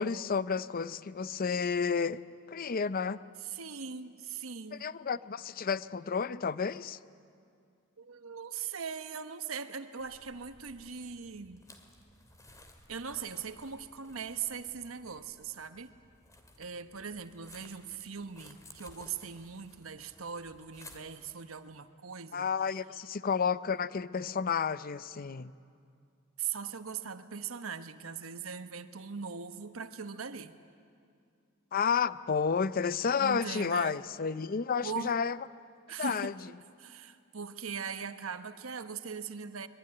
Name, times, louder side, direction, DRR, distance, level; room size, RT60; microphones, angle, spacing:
voice 1, 0.0-2.2 2.5-3.2 4.8-7.0 22.3-25.5 31.7-35.4 36.0-36.3, left 6 dB, 45° left, 16 dB, 0.5 m, -31 dB
voice 2, 3.4-4.9 8.0-11.6 12.9-15.9 16.6-22.5 26.4-30.6 33.2-34.0 34.8-35.2 35.9-36.4 36.8-39.7, right 6 dB, 80° right, 10 dB, 1.1 m, -40 dB
sound 1, 10.0-21.4, left 2 dB, 15° left, 2.2 m, -57 dB
24.0 x 22.0 x 9.8 m, 2.3 s
head